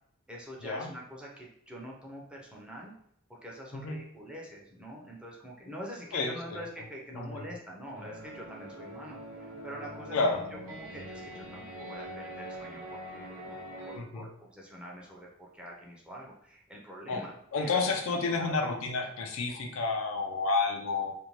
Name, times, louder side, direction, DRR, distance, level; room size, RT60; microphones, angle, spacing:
voice 1, 0.3-2.9 3.3-13.3 13.9-17.8 18.4-19.1, equal, 5° right, -3 dB, 0.5 m, -45 dB
voice 2, 6.1-6.6 7.1-7.5 10.1-10.4 14.0-14.3 17.1-17.2 17.5-21.1, left 3 dB, 90° left, 3 dB, 0.5 m, -30 dB
sound 1, 7.9-14.0, right 1 dB, 85° right, 0.8 m, -43 dB
2.6 x 2.1 x 3.0 m, 0.71 s
head